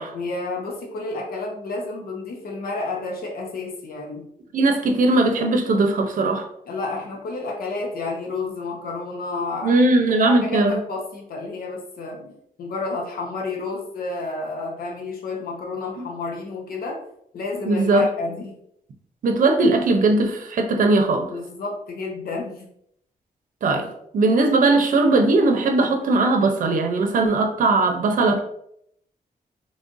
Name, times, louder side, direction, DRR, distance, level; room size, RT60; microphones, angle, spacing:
voice 1, 0.1-4.2 6.7-9.8 10.2-17.0 17.3-18.5 21.3-22.7, left 3 dB, 80° left, 0 dB, 0.8 m, -30 dB
voice 2, 4.5-6.4 9.6-10.8 16.0-16.1 17.7-18.1 19.2-21.3 23.6-23.9 24.1-28.4, right 2 dB, 65° right, 4 dB, 0.6 m, -19 dB
3.8 x 3.3 x 2.6 m, 0.72 s
wide cardioid pair, 145°, 15 cm